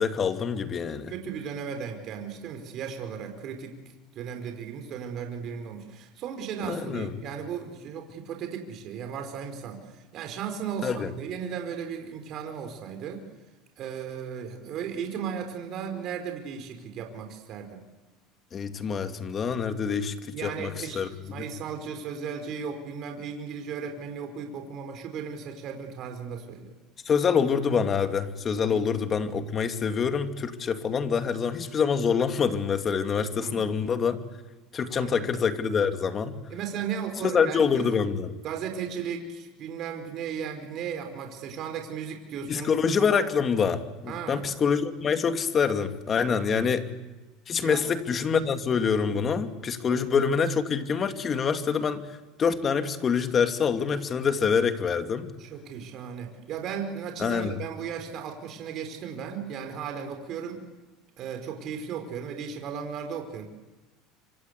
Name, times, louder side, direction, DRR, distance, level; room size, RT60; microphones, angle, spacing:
voice 1, 0.0-1.1 6.6-7.1 10.8-11.1 18.5-21.1 21.4-21.5 27.0-34.2 34.7-36.4 37.2-38.3 42.5-46.9 47.5-52.0 52.4-55.3 57.2-57.6, left 6 dB, 35° left, 7 dB, 2.6 m, -26 dB
voice 2, 1.1-3.8 4.1-13.2 13.8-17.8 20.3-26.7 28.7-28.9 33.4-33.7 34.9-35.3 36.5-37.9 38.4-42.7 44.1-44.5 46.3-46.8 47.6-47.8 49.9-50.0 55.4-60.7 61.2-63.5, right 7 dB, 50° right, 5 dB, 4.9 m, -36 dB
26.5 x 26.0 x 8.4 m, 1.1 s
supercardioid pair, 110°, 0 cm